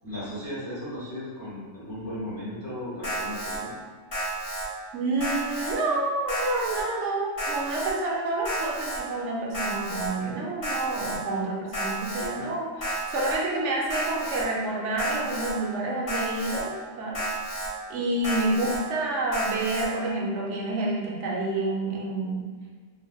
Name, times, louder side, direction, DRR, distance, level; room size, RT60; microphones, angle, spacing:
voice 1, 0.0-3.7, left 1 dB, 15° left, -10 dB, 1.1 m, -36 dB
Alarm, 3.0-3.6 4.1-4.6 5.2-5.7 6.3-6.8 7.4-7.9 8.4-9.0 9.5-10.1 10.6-11.2 11.7-12.3 12.8-13.3 13.9-14.4 15.0-15.5 16.1-16.6 17.1-17.7 18.2-18.8 19.3-19.8, right 1 dB, 40° left, 1.3 m, -31 dB
voice 2, 4.9-17.2 17.9-22.5, right 2 dB, 70° right, -2 dB, 0.9 m, -28 dB
3.3 x 3.2 x 2.3 m, 1.5 s
omnidirectional pair, 1.4 m